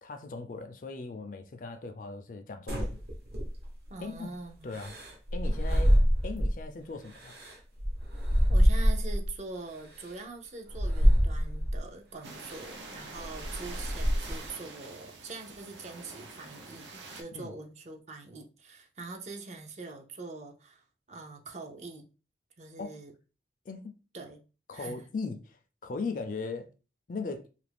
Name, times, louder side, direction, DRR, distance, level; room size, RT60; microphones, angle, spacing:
voice 1, 0.0-3.0 4.0-4.4 4.6-5.0 5.3-7.3 17.3-17.5 22.8-23.0 23.7-23.9 24.7-26.7 27.1-27.5, left 3 dB, 45° left, 0.4 m, -38 dB
sound 1, 2.7-3.9 4.7-6.6 7.1-9.3 10.0-10.1 10.7-11.8 12.4-12.7 13.1-14.5, equal, 60° right, 1.0 m, -26 dB
voice 2, 3.9-4.7 8.5-22.0 22.6-23.1 24.1-24.4 24.7-25.0, right 3 dB, 40° right, 0.5 m, -44 dB
sound 2, 12.2-17.2, right 3 dB, 90° right, 0.6 m, -45 dB
2.7 x 2.5 x 3.3 m
head